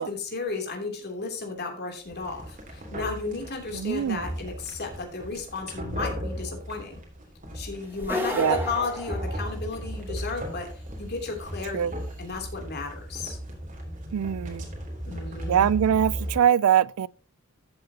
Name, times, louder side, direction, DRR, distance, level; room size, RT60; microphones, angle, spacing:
voice 1, 0.0-7.0 7.5-10.7 11.0-13.4 15.1-15.7, left 4 dB, 50° left, 3.0 m, -34 dB
sound 1, 2.1-16.4, equal, 40° right, 3.2 m, -36 dB
voice 2, 3.7-4.2 8.4-8.6 11.7-11.9 14.1-14.7 15.5-17.1, right 9 dB, 85° right, 0.3 m, -23 dB
sound 2, 8.0-10.0, left 1 dB, 10° right, 1.6 m, -32 dB
14.0 x 7.9 x 2.9 m
head